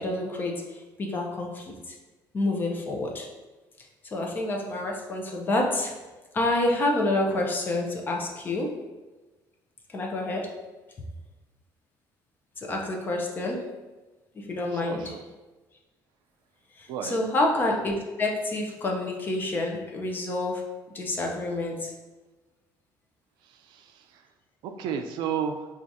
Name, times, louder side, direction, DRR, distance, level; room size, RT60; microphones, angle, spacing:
voice 1, 0.0-1.9 2.3-3.3 4.1-5.9 6.3-8.7 9.9-10.5 12.6-13.6 14.3-15.1 16.8-20.6 20.9-21.9, left 2 dB, 25° left, 0 dB, 0.5 m, -28 dB
voice 2, 14.7-15.2 16.9-17.2 23.4-24.3 24.6-25.7, right 7 dB, 75° right, 6 dB, 0.4 m, -33 dB
4.6 x 2.4 x 2.6 m, 1.2 s
cardioid pair, 165°, 8 cm